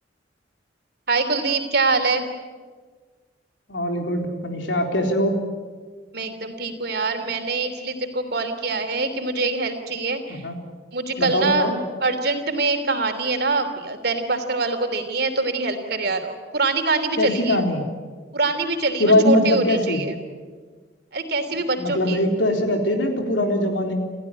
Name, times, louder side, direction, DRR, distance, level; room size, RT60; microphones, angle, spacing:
voice 1, 1.1-2.2 6.1-10.4 10.9-11.7 12.0-17.6 18.3-20.1 21.1-22.2, right 3 dB, 60° right, 6 dB, 3.2 m, -24 dB
voice 2, 3.7-5.4 10.3-10.6 11.2-11.7 17.2-17.8 19.0-20.0 21.8-23.9, left 1 dB, 85° left, 3 dB, 3.8 m, -21 dB
28.0 x 15.5 x 10.0 m, 1.5 s
head